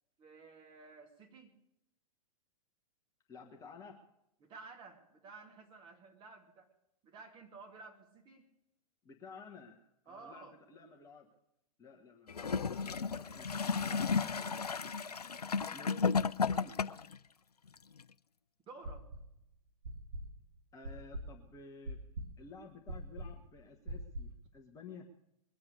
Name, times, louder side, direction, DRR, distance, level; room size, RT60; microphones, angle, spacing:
voice 1, 0.2-1.6 4.4-6.7 7.0-8.5 10.1-10.6 18.7-19.1, right 4 dB, 25° right, 1 dB, 2.6 m, -53 dB
voice 2, 3.3-4.0 9.0-11.3 11.8-15.0 15.7-16.2 16.5-16.8 20.7-22.0 22.4-25.1, left 4 dB, 15° left, 1 dB, 1.3 m, -53 dB
Gurgling / Toilet flush, 12.3-17.2 18.0-18.1, left 5 dB, 80° left, 0.5 m, -33 dB
sound 1, 18.8-19.4 19.8-24.5, right 1 dB, 55° right, 2.4 m, -44 dB
22.0 x 7.7 x 6.7 m, 0.82 s
figure-of-eight pair, 105°, 20 cm